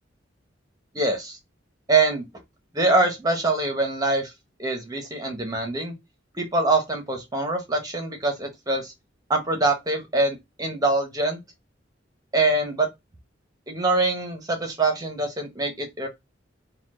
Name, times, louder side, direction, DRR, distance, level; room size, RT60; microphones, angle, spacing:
voice 1, 0.9-1.4 1.9-2.3 2.7-4.3 4.6-5.9 6.3-8.9 9.3-11.4 12.3-12.9 13.7-16.1, right 2 dB, 20° right, 1.1 m, -24 dB
4.3 x 2.4 x 3.7 m
head